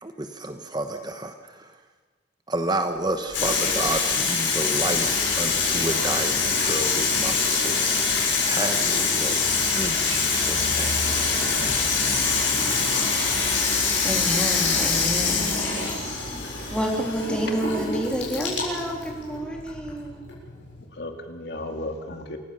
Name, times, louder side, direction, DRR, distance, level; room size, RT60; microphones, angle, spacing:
voice 1, 0.0-1.8 2.5-5.1 5.3-11.9, right 2 dB, 20° right, 6 dB, 1.2 m, -31 dB
Aircraft, 3.2-20.3, right 1 dB, 75° right, 2.7 m, -37 dB
Water tap faucet / Sink (filling or washing), 3.3-20.8, left 5 dB, 80° left, 7.6 m, -24 dB
voice 2, 14.0-15.5 16.7-20.3, equal, 5° left, 0 dB, 3.4 m, -29 dB
voice 3, 15.0-15.4 15.8-15.9 16.2-16.3 20.9-22.4, left 1 dB, 60° left, 4 dB, 2.4 m, -35 dB
27.5 x 16.5 x 6.9 m, 1.4 s
head